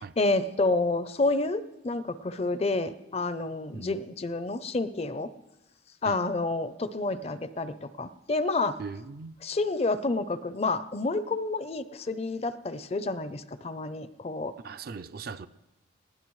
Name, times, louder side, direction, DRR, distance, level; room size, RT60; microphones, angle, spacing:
voice 1, 0.2-5.3 6.0-8.8 9.4-14.5, left 2 dB, 30° left, 0.5 m, -29 dB
voice 2, 8.8-9.4 14.6-15.5, right 5 dB, 50° right, 0.4 m, -39 dB
20.5 x 16.5 x 3.1 m
head